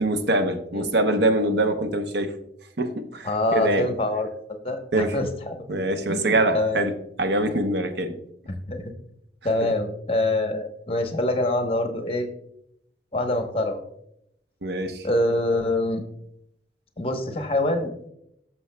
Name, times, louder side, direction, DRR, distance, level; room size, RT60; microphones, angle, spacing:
voice 1, 0.0-2.3 2.8-3.9 4.9-5.2 5.7-6.9 7.2-8.2 9.6-9.7 14.6-15.1, right 1 dB, 70° right, 0.8 m, -24 dB
voice 2, 3.2-5.6 6.1-6.9 8.5-8.9 9.4-12.3 13.1-13.8 15.0-16.0 17.0-17.9, left 1 dB, 30° left, 0.9 m, -25 dB
14.0 x 6.1 x 2.2 m
head